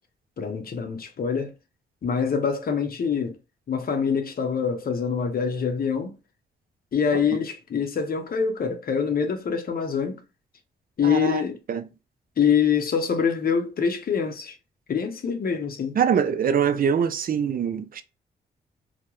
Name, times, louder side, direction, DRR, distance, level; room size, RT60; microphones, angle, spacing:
voice 1, 0.4-1.5 2.0-3.4 3.7-6.1 6.9-10.2 11.0-11.6 12.4-14.5 14.9-16.0, left 6 dB, 50° left, 0.6 m, -25 dB
voice 2, 11.0-11.4 11.7-11.8 16.0-18.0, right 7 dB, 50° right, 0.4 m, -23 dB
2.2 x 2.1 x 3.0 m
cardioid pair, 70°, 20 cm